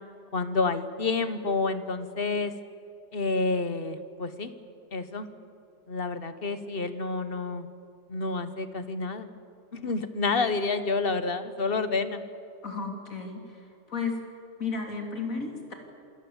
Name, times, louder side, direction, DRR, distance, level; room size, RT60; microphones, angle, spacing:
voice 1, 0.3-2.5 3.1-4.5 4.9-5.3 5.9-7.7 8.1-9.3 9.7-12.2, left 3 dB, 40° left, 11 dB, 1.2 m, -29 dB
voice 2, 12.6-14.2 14.6-15.7, left 4 dB, 60° left, 2 dB, 3.5 m, -33 dB
27.5 x 18.5 x 7.3 m, 2.6 s
omnidirectional pair, 1.6 m